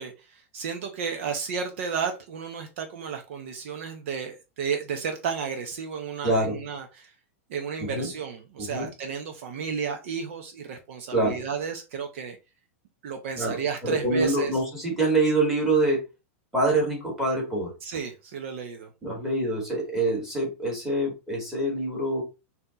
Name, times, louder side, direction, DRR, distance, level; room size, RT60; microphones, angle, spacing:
voice 1, 0.0-7.1 7.5-12.4 13.0-14.6 17.8-18.9, right 6 dB, 55° right, 5 dB, 0.8 m, -33 dB
voice 2, 6.2-6.6 7.8-8.1 8.6-8.9 11.1-11.4 13.4-16.0 16.5-17.7 19.0-22.2, right 2 dB, 5° right, -2 dB, 2.0 m, -25 dB
4.2 x 2.8 x 3.8 m, 0.27 s
supercardioid pair, 160°, 8 cm